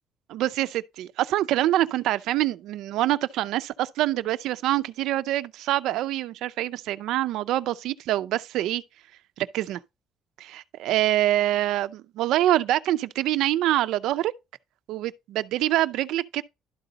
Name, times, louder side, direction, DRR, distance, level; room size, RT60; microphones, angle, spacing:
voice 1, 0.3-8.8 9.4-9.8 10.4-14.3 14.9-16.4, right 14 dB, 70° right, 0.4 m, -25 dB
11.5 x 3.9 x 3.9 m
cardioid pair, 155°, 0 cm